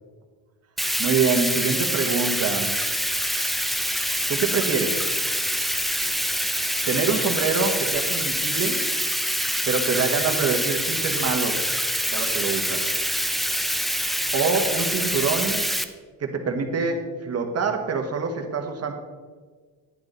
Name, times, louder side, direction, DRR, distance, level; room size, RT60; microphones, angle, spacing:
Bathtub (filling or washing), 0.8-15.8, equal, ahead, 0.5 m, -25 dB
voice 1, 1.0-2.7 4.3-5.1 6.9-8.8 9.6-11.8 12.1-12.9 14.3-15.6 16.2-18.9, right 5 dB, 45° right, 4 dB, 1.5 m, -25 dB
11.0 x 9.6 x 4.0 m, 1.5 s
cardioid pair, 125°, 36 cm